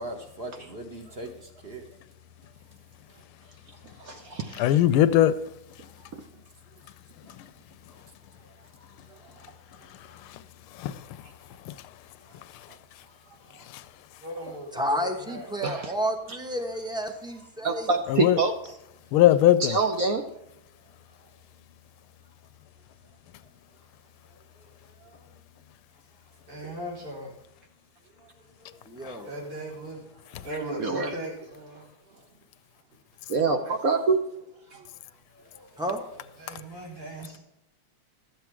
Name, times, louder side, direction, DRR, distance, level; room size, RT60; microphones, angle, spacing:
voice 1, 0.0-1.8 6.0-6.4 9.1-9.9 12.3-12.4 13.3-13.7 25.0-25.2 28.2-28.3 28.6-28.8 32.1-32.2 34.7-34.9 35.3-35.8, right 1 dB, 30° right, 1.3 m, -43 dB
voice 2, 4.0-4.8 6.1-6.2 15.6-15.9 16.3-16.4 17.6-18.5 19.6-20.2 30.8-31.1 33.3-34.2, right 4 dB, 55° right, 1.1 m, -26 dB
voice 3, 4.6-5.3 10.8-11.0 11.7-11.8 18.1-18.4 19.1-19.8, left 12 dB, 85° left, 1.4 m, -19 dB
voice 4, 14.2-15.5 26.5-27.3 29.2-30.0 30.3-31.9 33.7-33.8 36.1-37.4, right 1 dB, 85° right, 5.1 m, -38 dB
voice 5, 14.7-17.9 28.9-29.3 35.8-36.0, equal, 5° right, 0.5 m, -30 dB
12.5 x 7.9 x 4.7 m
omnidirectional pair, 2.3 m